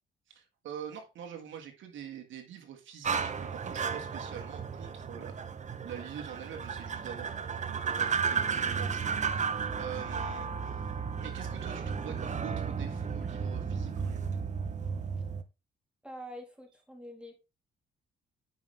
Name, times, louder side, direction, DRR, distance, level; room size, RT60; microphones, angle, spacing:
voice 1, 0.3-5.4 5.8-9.5 9.8-10.8 11.2-14.4, right 8 dB, 75° right, 1.8 m, -45 dB
sound 1, 3.0-15.4, right 6 dB, 35° right, 0.9 m, -34 dB
voice 2, 16.0-17.5, equal, 5° right, 3.1 m, -46 dB
9.5 x 5.7 x 3.4 m
cardioid pair, 90°, 20 cm